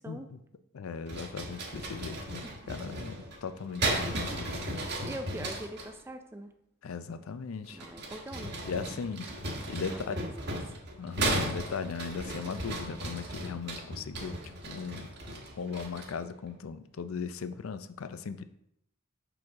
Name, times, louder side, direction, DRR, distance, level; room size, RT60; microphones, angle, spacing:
voice 1, 0.1-0.4 0.7-3.2 3.4-4.9 6.8-7.8 8.6-9.3 9.7-10.3 11.0-18.4, left 5 dB, 75° left, 11 dB, 0.4 m, -38 dB
sound 1, 1.1-5.9 7.6-16.2, right 1 dB, 55° right, 1.2 m, -36 dB
voice 2, 5.0-6.5 7.7-9.1 9.9-10.6, right 1 dB, 10° right, 6 dB, 0.4 m, -43 dB
6.1 x 5.0 x 3.5 m, 0.76 s
head